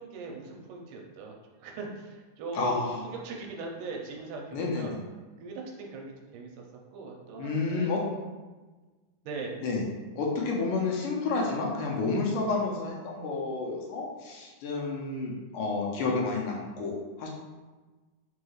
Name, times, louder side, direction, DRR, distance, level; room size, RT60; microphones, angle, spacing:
voice 1, 0.0-5.0 5.4-6.5 6.9-7.9 9.3-9.6, right 3 dB, 80° right, 0 dB, 2.1 m, -40 dB
voice 2, 2.5-3.0 4.5-4.9 7.4-8.0 9.6-9.8 10.2-17.3, left 3 dB, 90° left, -1 dB, 2.3 m, -30 dB
5.3 x 2.3 x 3.1 m, 1.3 s
omnidirectional pair, 3.6 m